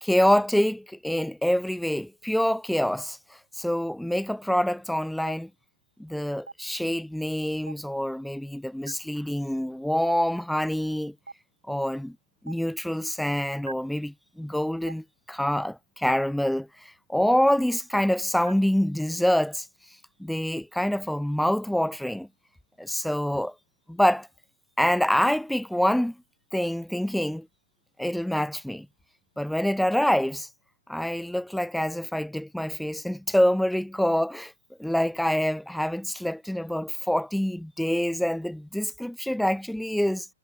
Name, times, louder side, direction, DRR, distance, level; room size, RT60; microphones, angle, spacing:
voice 1, 0.0-5.5 6.0-11.1 11.7-12.2 12.4-19.7 20.2-22.3 22.8-23.5 23.9-24.3 24.8-26.1 26.5-27.5 28.0-28.9 29.4-30.5 30.9-34.5 34.8-40.3, equal, ahead, 0.6 m, -26 dB
Stream, 5.3-5.4 6.5-6.6 7.7-7.8 8.9-9.0 10.1-10.2 11.3-11.4 12.5-12.6 13.7-13.8 14.9-15.0 16.1-16.2 17.3-17.4 18.5-18.6, right 3 dB, 85° right, 2.0 m, -38 dB
figure-of-eight pair, 115°, 0 cm